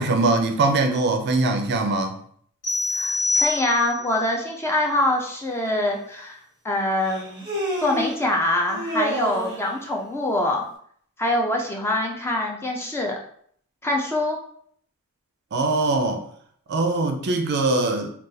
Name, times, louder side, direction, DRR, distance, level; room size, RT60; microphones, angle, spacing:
voice 1, 0.0-2.2 15.5-16.2 16.7-18.1, right 2 dB, 50° right, 0.4 m, -22 dB
sound 1, 2.6-4.2, left 3 dB, 65° left, 1.2 m, -25 dB
voice 2, 2.9-6.4 6.6-7.5 7.8-10.7 11.2-13.2 13.8-14.4, left 1 dB, 10° left, 0.4 m, -24 dB
Human voice, 5.6-5.7 7.0-8.2 8.7-9.7, right 1 dB, 15° right, 0.9 m, -29 dB
2.5 x 2.3 x 3.9 m
head